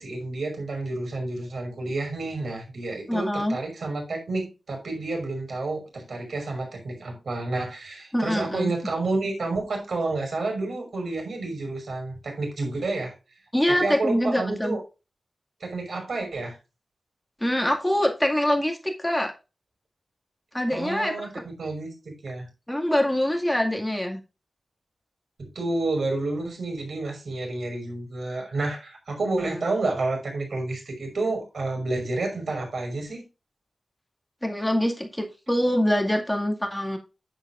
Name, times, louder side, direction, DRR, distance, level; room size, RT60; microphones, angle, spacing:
voice 1, 0.0-13.1 13.7-14.8 15.6-16.6 20.7-22.5 25.4-33.2, right 2 dB, 80° right, 3 dB, 5.7 m, -30 dB
voice 2, 3.1-3.6 8.1-8.7 13.5-14.8 17.4-19.3 20.5-21.3 22.7-24.2 29.4-29.6 34.4-37.0, left 1 dB, 5° left, 2 dB, 2.1 m, -24 dB
10.5 x 9.9 x 2.5 m, 0.29 s
wide cardioid pair, 95°, 0 cm